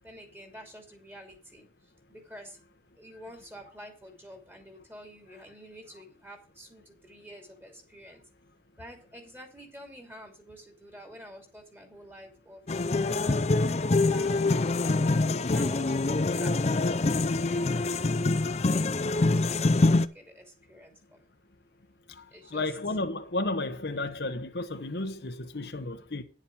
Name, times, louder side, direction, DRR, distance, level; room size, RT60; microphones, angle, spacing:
voice 1, 0.0-2.6 3.0-8.2 8.8-14.4 14.8-17.8 18.3-21.3 22.3-23.0, equal, 10° right, 2.6 m, -49 dB
sound 1, 12.7-20.1, left 2 dB, 35° left, 0.5 m, -25 dB
voice 2, 22.5-26.2, left 2 dB, 65° left, 1.1 m, -32 dB
10.0 x 7.4 x 5.1 m
head